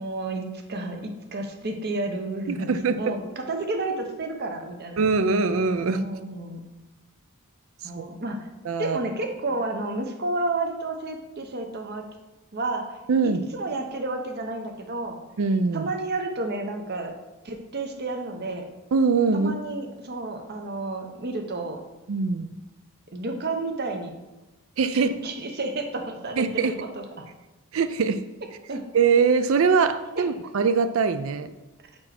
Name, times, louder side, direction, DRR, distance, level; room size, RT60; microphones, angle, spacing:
voice 1, 0.0-2.7 3.0-5.0 5.9-6.6 7.8-8.5 8.8-12.0 12.5-13.0 13.2-15.2 15.7-17.1 17.4-18.7 19.3-21.8 23.1-24.1 24.9-27.3 28.7-28.8 30.2-30.3, right 2 dB, 45° right, 4 dB, 0.8 m, -31 dB
voice 2, 2.5-3.2 5.0-6.0 7.9-8.1 8.7-9.0 13.1-13.4 15.4-15.9 18.9-19.6 22.1-22.5 24.8-25.1 26.4-26.7 27.7-28.2 28.9-31.5, right 5 dB, 60° right, 11 dB, 0.4 m, -22 dB
4.4 x 4.3 x 5.8 m, 1.1 s
head